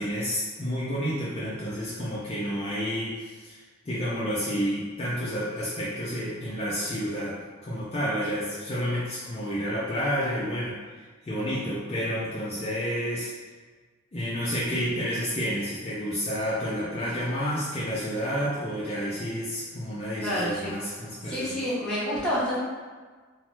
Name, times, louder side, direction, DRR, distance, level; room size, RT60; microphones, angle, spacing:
voice 1, 0.0-7.4 7.6-13.3 14.1-21.6, equal, 30° left, -9 dB, 0.4 m, -30 dB
voice 2, 20.2-20.7 21.3-22.6, equal, 5° left, -10 dB, 0.8 m, -28 dB
3.0 x 2.0 x 3.0 m, 1.4 s
head